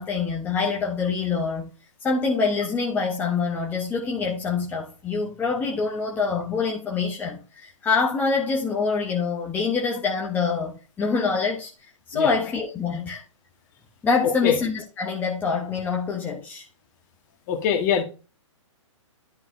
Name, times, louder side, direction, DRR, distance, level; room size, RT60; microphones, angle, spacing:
voice 1, 0.0-1.7 2.0-11.7 12.1-13.2 14.0-16.6, left 5 dB, 10° left, 1.0 m, -25 dB
voice 2, 14.2-14.6 17.5-18.0, left 7 dB, 35° left, 1.7 m, -23 dB
11.0 x 5.8 x 2.7 m
figure-of-eight pair, 120°, 16 cm